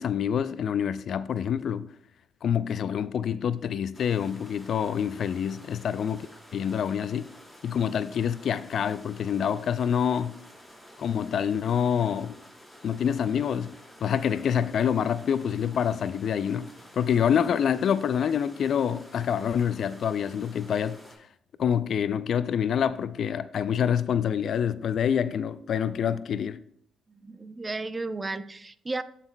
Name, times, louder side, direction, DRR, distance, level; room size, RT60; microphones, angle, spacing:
voice 1, 0.0-1.9 2.4-6.3 6.5-7.3 7.6-10.4 11.0-12.4 12.8-13.7 14.0-21.0 21.6-26.6, left 8 dB, 65° left, 0.3 m, -26 dB
sound 1, 3.9-21.2, equal, ahead, 3.8 m, -51 dB
voice 2, 27.1-29.0, right 3 dB, 25° right, 0.5 m, -34 dB
15.5 x 5.8 x 2.2 m
supercardioid pair, 55°, 0 cm